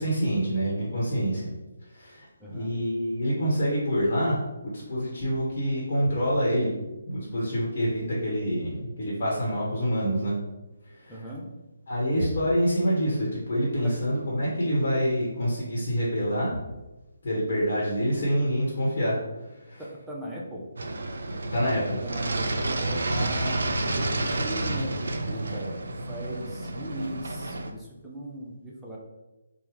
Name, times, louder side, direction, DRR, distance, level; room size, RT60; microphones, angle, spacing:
voice 1, 0.0-1.4 1.9-6.7 7.1-10.3 10.9-11.1 11.9-16.5 17.2-19.2 19.4-19.8 21.5-22.0, equal, 50° left, -5 dB, 1.0 m, -26 dB
voice 2, 2.4-2.8 11.1-11.5 13.8-13.9 19.8-20.7 22.0-25.8 26.1-29.0, right 1 dB, 5° right, -6 dB, 0.5 m, -38 dB
sound 1, 20.8-27.7, right 2 dB, 70° right, 0.4 m, -30 dB
3.4 x 2.1 x 3.1 m, 1.0 s
figure-of-eight pair, 150°, 0 cm